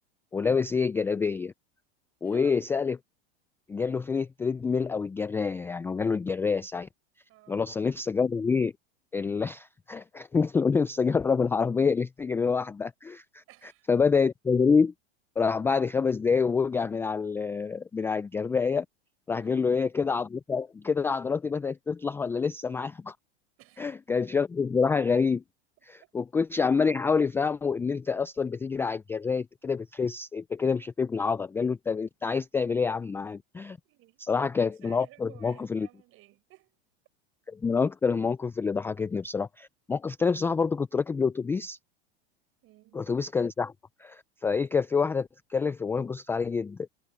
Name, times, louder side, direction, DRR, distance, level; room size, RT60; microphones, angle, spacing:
voice 1, 0.3-1.5 2.2-3.0 3.7-6.9 7.5-8.7 9.1-13.4 13.9-14.9 15.4-18.9 19.3-23.1 23.8-25.4 25.9-33.8 34.2-35.9 37.5-41.8 42.9-43.7 44.0-46.8, left 5 dB, 10° left, 0.3 m, -27 dB
voice 2, 2.2-2.6 7.3-7.7 13.5-13.9 19.4-19.7 23.6-23.9 33.8-34.2 34.7-36.8 42.6-43.1, right 17 dB, 45° right, 6.1 m, -54 dB
hypercardioid pair, 120°, 31 cm